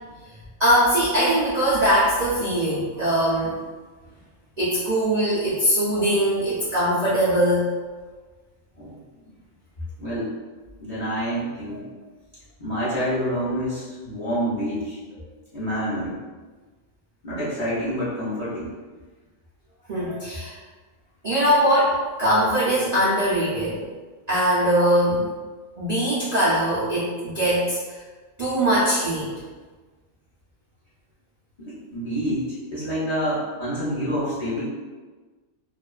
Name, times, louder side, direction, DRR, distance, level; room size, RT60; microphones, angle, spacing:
voice 1, 0.6-3.6 4.6-7.7 19.9-20.5 21.2-23.8 24.3-25.3 25.8-28.0 28.4-29.3, equal, 85° right, -9 dB, 0.3 m, -21 dB
voice 2, 10.0-10.4 10.8-11.9 12.6-15.0 15.5-16.2 17.2-18.7 31.6-34.6, equal, 40° left, -10 dB, 0.5 m, -27 dB
2.4 x 2.3 x 2.3 m, 1.3 s
omnidirectional pair, 1.5 m